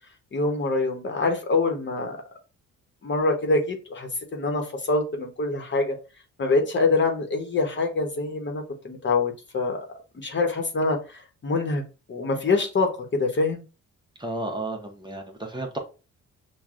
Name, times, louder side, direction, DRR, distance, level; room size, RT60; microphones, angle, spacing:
voice 1, 0.3-2.2 3.0-5.9 6.4-9.8 10.1-11.8 12.1-13.6, left 3 dB, 40° left, 3 dB, 1.0 m, -25 dB
voice 2, 14.2-15.8, right 2 dB, 15° right, 2 dB, 0.8 m, -32 dB
5.8 x 2.2 x 2.4 m, 0.32 s
cardioid pair, 90°, 30 cm